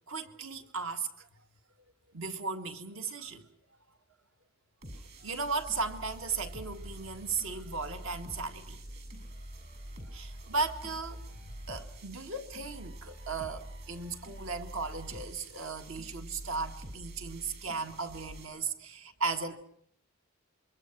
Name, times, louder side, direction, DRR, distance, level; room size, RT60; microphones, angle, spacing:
voice 1, 0.1-1.3 2.1-3.5 4.9-8.8 10.1-19.6, right 4 dB, 70° right, 1.8 m, -36 dB
sound 1, 4.8-18.5, right 1 dB, 50° right, 7.9 m, -46 dB
26.5 x 23.5 x 6.1 m
head